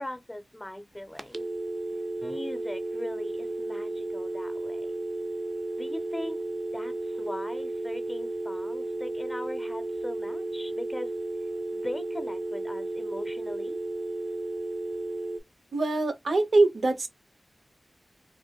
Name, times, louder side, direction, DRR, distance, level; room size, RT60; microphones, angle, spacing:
voice 1, 0.0-1.5 2.2-5.0 5.8-6.4 6.7-11.1 11.7-13.8, left 1 dB, 15° left, 0.5 m, -39 dB
sound 1, 1.2-15.4, right 2 dB, 40° right, 0.3 m, -33 dB
voice 2, 15.7-17.1, right 2 dB, 80° right, 0.6 m, -23 dB
2.5 x 2.5 x 2.2 m
wide cardioid pair, 105°, 0 cm